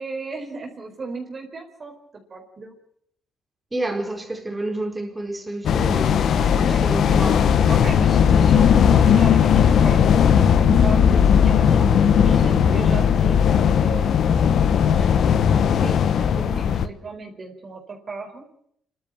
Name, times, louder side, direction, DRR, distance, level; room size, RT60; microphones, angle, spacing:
voice 1, 0.0-1.9 2.3-2.7 6.4-14.1 14.4-18.5, right 3 dB, 40° right, 4.5 m, -36 dB
voice 2, 3.7-7.5, right 1 dB, 15° right, 4.6 m, -30 dB
sound 1, 5.6-16.9, left 8 dB, 65° left, 1.1 m, -17 dB
sound 2, 9.3-13.2, left 2 dB, 20° left, 4.9 m, -32 dB
27.0 x 12.5 x 9.0 m
cardioid pair, 90°, 0 cm